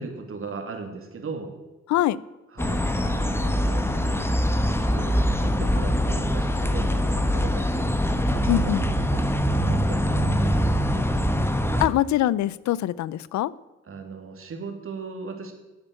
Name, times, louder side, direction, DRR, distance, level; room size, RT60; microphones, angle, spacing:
voice 1, 0.0-1.5 2.5-4.3 4.6-7.9 8.3-11.5 13.8-15.5, right 4 dB, 45° right, 4 dB, 2.9 m, -38 dB
voice 2, 1.9-2.2 8.5-8.8 11.8-13.5, left 14 dB, 70° left, 20 dB, 0.6 m, -23 dB
sound 1, 2.6-11.9, equal, 10° left, 1.2 m, -23 dB
11.5 x 8.7 x 8.3 m, 1.1 s
supercardioid pair, 75°, 30 cm